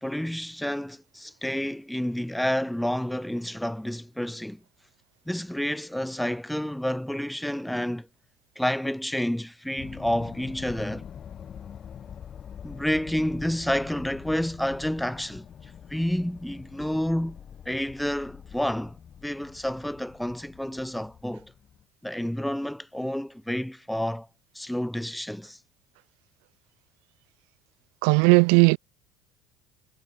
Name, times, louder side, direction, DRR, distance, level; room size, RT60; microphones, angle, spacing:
voice 1, 0.0-4.6 5.3-8.1 8.6-11.1 12.6-15.4 15.9-17.4 17.7-19.0 19.2-21.5 22.0-24.3 24.5-25.6, equal, 5° left, 0.5 m, -29 dB
sound 1, 9.8-21.8, left 8 dB, 40° left, 1.4 m, -45 dB
voice 2, 28.0-28.8, right 40 dB or more, 75° right, 0.6 m, -17 dB
supercardioid pair, 105°, 0 cm